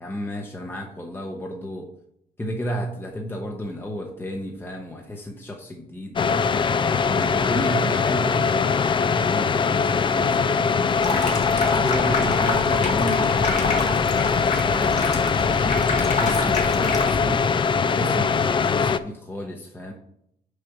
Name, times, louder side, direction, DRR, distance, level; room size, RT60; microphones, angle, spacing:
voice 1, 0.0-1.9 2.4-6.2 7.0-11.3 11.6-13.9 14.6-17.4 17.8-19.9, equal, 15° left, 1 dB, 0.8 m, -32 dB
sound 1, 6.2-19.0, left 5 dB, 30° left, 0.3 m, -22 dB
Water tap faucet / Sink (filling or washing), 10.9-17.4, left 3 dB, 45° left, 1.3 m, -28 dB
6.4 x 5.1 x 5.9 m, 0.75 s
cardioid pair, 130°, 17 cm